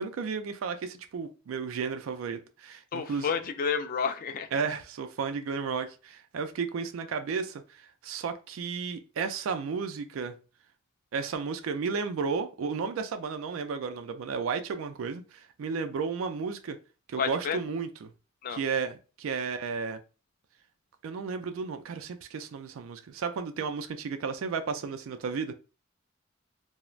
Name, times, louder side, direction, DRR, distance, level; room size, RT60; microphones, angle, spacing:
voice 1, 0.0-3.3 4.5-10.3 11.1-16.8 17.1-18.1 18.5-20.0 21.0-25.5, right 5 dB, 90° right, 0.4 m, -33 dB
voice 2, 2.9-4.5 17.2-17.6 18.4-18.6, left 6 dB, 45° left, 0.3 m, -30 dB
2.4 x 2.0 x 3.0 m
head